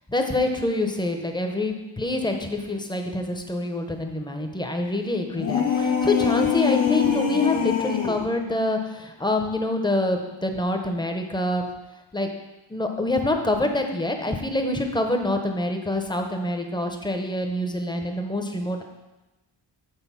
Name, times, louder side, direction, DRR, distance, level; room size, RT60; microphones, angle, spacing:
voice 1, 0.1-11.6 12.1-12.3 12.7-18.8, left 1 dB, 10° left, 4 dB, 0.7 m, -26 dB
sound 1, 5.3-8.3, left 7 dB, 80° left, 1.3 m, -23 dB
8.2 x 3.9 x 5.6 m, 1.1 s
wide cardioid pair, 140°, 44 cm